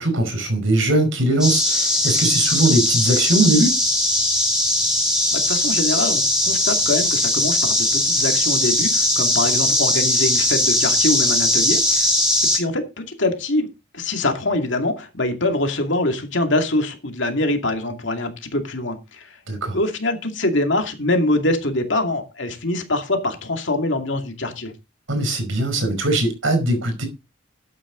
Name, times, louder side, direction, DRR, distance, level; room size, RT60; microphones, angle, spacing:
voice 1, 0.0-3.8 19.5-19.8 25.1-27.1, right 2 dB, 75° right, 5.2 m, -20 dB
sound 1, 1.4-12.6, left 1 dB, 5° right, 4.9 m, -19 dB
voice 2, 5.3-12.1 12.5-13.7 13.9-19.4 19.7-24.7, left 2 dB, 60° left, 2.4 m, -24 dB
12.0 x 9.2 x 3.9 m
head